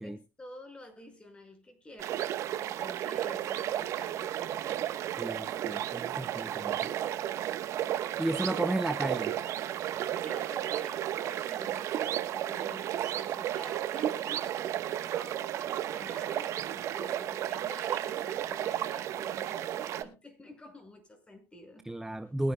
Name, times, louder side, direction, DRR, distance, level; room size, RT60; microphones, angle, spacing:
voice 1, 0.0-4.8 6.5-7.2 7.5-8.1 8.5-9.3 10.2-21.9, left 1 dB, 20° left, 5.7 m, -50 dB
sound 1, 2.0-20.0, right 11 dB, 60° right, 1.2 m, -33 dB
voice 2, 5.2-6.8 8.2-9.3 21.8-22.5, right 1 dB, 5° right, 0.7 m, -33 dB
22.5 x 9.6 x 2.3 m
supercardioid pair, 95°, 6 cm